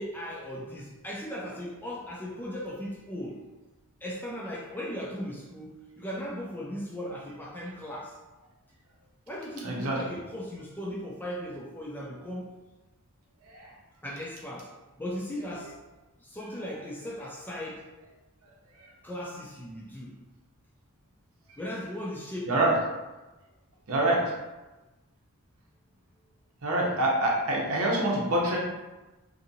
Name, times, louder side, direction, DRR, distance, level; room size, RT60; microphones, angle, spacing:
voice 1, 0.0-3.4 4.0-8.2 9.3-12.5 14.0-15.8 16.2-17.9 19.0-20.2 21.6-22.7, equal, 10° left, -3 dB, 0.3 m, -37 dB
voice 2, 9.6-10.0 13.5-13.7 22.5-22.7 23.9-24.2 26.6-28.6, right 1 dB, 65° right, -2 dB, 0.7 m, -25 dB
2.7 x 2.6 x 2.6 m, 1.1 s
head